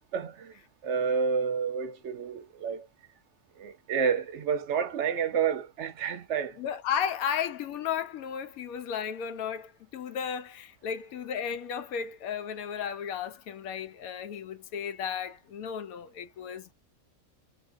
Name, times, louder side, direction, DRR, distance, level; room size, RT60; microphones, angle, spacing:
voice 1, 0.1-0.5 0.8-2.9 3.6-6.5, right 6 dB, 60° right, 0.8 m, -29 dB
voice 2, 6.5-16.7, left 8 dB, 75° left, 1.0 m, -34 dB
2.8 x 2.5 x 2.5 m
omnidirectional pair, 1.5 m